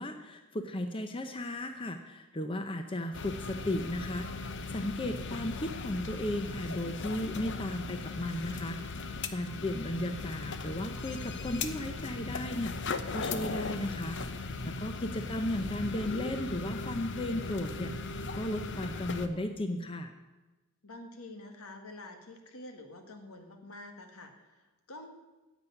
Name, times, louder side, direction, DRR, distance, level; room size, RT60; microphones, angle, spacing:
voice 1, 0.0-20.1, left 1 dB, 25° left, 7 dB, 0.7 m, -35 dB
sound 1, 3.1-19.3, left 3 dB, 55° left, 0.9 m, -38 dB
voice 2, 20.8-25.1, left 2 dB, 75° left, 5 dB, 1.9 m, -48 dB
10.5 x 8.1 x 9.9 m, 1.1 s
head